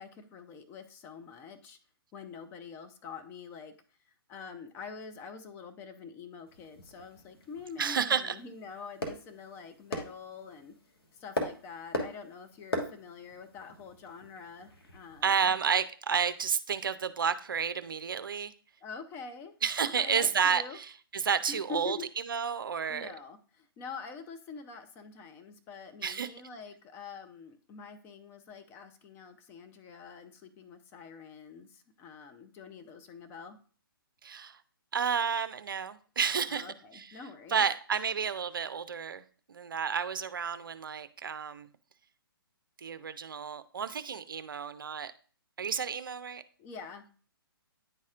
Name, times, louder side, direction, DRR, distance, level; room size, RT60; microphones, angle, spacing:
voice 1, 0.0-1.8 2.1-3.7 4.0-10.7 11.1-15.5 18.8-19.5 19.8-20.8 21.5-22.1 22.9-33.6 36.5-37.6 46.6-47.1, left 5 dB, 20° left, 7 dB, 0.6 m, -46 dB
sound 1, 6.5-15.3, left 1 dB, 80° left, 1.4 m, -41 dB
voice 2, 7.8-8.4 15.2-18.5 19.6-22.0 22.3-23.1 26.0-26.3 34.2-34.6 34.9-36.7 36.9-37.1 37.5-41.7 42.8-45.1 45.6-46.4, right 6 dB, 60° right, 12 dB, 0.5 m, -31 dB
10.0 x 4.1 x 2.4 m, 0.41 s
figure-of-eight pair, 130°, 12 cm